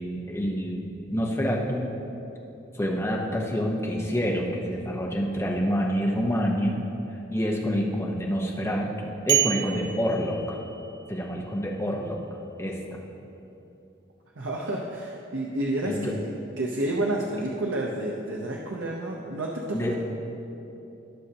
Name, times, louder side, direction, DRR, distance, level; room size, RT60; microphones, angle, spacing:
voice 1, 0.0-1.9 2.7-6.8 7.3-10.6 11.1-12.2 12.6-12.8 15.8-16.2 19.7-20.0, equal, 15° left, -1 dB, 0.9 m, -27 dB
sound 1, 9.3-11.1, right 12 dB, 60° right, 0.4 m, -28 dB
voice 2, 14.4-20.0, right 1 dB, 80° right, -1 dB, 0.7 m, -30 dB
16.5 x 6.4 x 2.9 m, 2.9 s
head